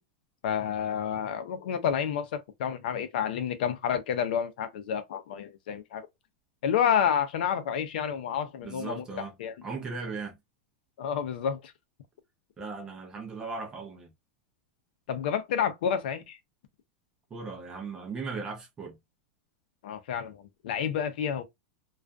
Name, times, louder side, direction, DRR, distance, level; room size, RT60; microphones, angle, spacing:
voice 1, 0.4-6.1 6.6-9.0 9.4-9.5 11.0-11.7 15.1-16.4 19.8-21.4, left 8 dB, 65° left, 0.5 m, -29 dB
voice 2, 8.6-10.4 12.6-14.1 17.3-19.0, right 4 dB, 15° right, 0.5 m, -38 dB
2.4 x 2.3 x 2.2 m
supercardioid pair, 180°, 6 cm